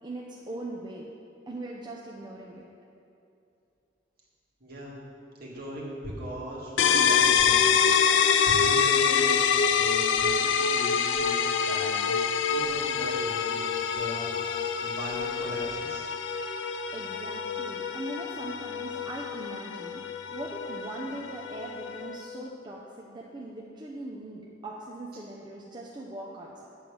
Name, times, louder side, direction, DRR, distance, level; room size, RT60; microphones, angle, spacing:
voice 1, 0.0-1.1 1.5-2.6 16.9-20.0 20.3-26.7, right 1 dB, 25° right, -3 dB, 0.6 m, -40 dB
voice 2, 4.6-4.9 5.4-7.7 8.5-13.6 13.9-14.5 14.8-16.1, equal, 55° right, -5 dB, 2.0 m, -39 dB
sound 1, 6.8-22.3, left 6 dB, 85° left, 0.4 m, -26 dB
8.0 x 4.5 x 7.1 m, 2.7 s
head